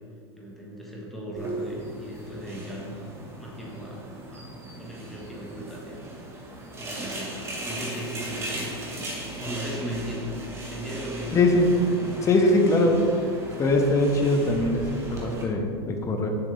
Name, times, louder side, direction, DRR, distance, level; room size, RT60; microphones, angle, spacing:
voice 1, 0.4-3.0 3.4-4.4 4.8-6.0 6.8-7.4 7.6-9.1 9.4-10.3 10.7-11.4, right 1 dB, ahead, -5 dB, 1.5 m, -37 dB
sound 1, 1.4-15.4, right 1 dB, 20° right, 1.4 m, -37 dB
voice 2, 11.3-11.7 12.2-12.9 13.6-16.3, left 2 dB, 20° left, 3 dB, 0.8 m, -22 dB
6.9 x 6.2 x 3.5 m, 2.5 s
supercardioid pair, 130°, 14 cm